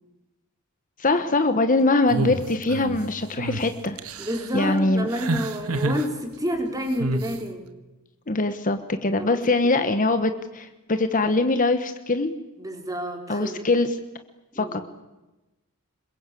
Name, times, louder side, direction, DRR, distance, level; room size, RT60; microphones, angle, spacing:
voice 1, 1.0-4.0 4.5-5.1 8.3-12.3 13.3-13.9 14.6-14.8, left 2 dB, 35° left, 9 dB, 1.2 m, -22 dB
sound 1, 2.1-3.0 3.4-3.6 4.0-4.5 5.1-6.1 7.0-7.3, right 2 dB, 75° right, 1.8 m, -28 dB
voice 2, 4.2-7.7 9.2-9.4 9.8-9.9 12.6-13.6 14.5-14.8, equal, 15° right, 3 dB, 4.4 m, -29 dB
26.5 x 22.5 x 8.5 m, 1.0 s
head